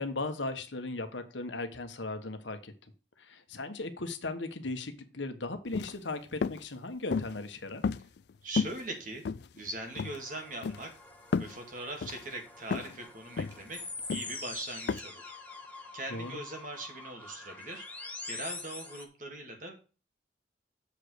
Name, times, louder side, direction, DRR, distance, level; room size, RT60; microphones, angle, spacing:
voice 1, 0.0-2.7 3.2-7.8 16.1-16.4, left 2 dB, 80° left, 8 dB, 1.2 m, -37 dB
sound 1, 5.7-6.0 6.4-6.6 7.1-7.4 7.8-8.3 8.6-8.8 9.3-9.7 10.0-10.2 10.6-10.9 11.3-11.6 12.0-12.2 12.7-13.0 13.4-13.6 14.1-14.4 14.9-15.0, left 5 dB, 60° left, 0.4 m, -32 dB
voice 2, 8.4-9.2 9.5-10.9 11.4-13.8 14.1-15.3 15.9-17.8 18.3-19.7, right 2 dB, 45° right, 3 dB, 2.1 m, -41 dB
sound 2, 9.9-19.0, left 3 dB, 10° left, 1.2 m, -45 dB
7.3 x 5.1 x 6.3 m, 0.35 s
head